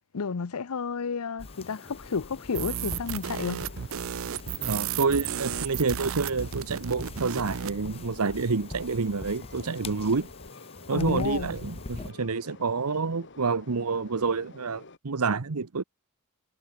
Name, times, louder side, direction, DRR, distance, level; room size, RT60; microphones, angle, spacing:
voice 1, 0.1-3.7 10.9-11.5, left 5 dB, 80° left, 0.7 m, -31 dB
Train, 1.4-15.0, left 3 dB, 55° left, 2.8 m, -50 dB
sound 1, 1.4-12.1, left 3 dB, 25° left, 0.6 m, -43 dB
sound 2, 2.5-7.8, right 8 dB, 65° right, 0.6 m, -33 dB
voice 2, 4.6-10.3 10.9-15.8, right 4 dB, 90° right, 0.9 m, -28 dB
head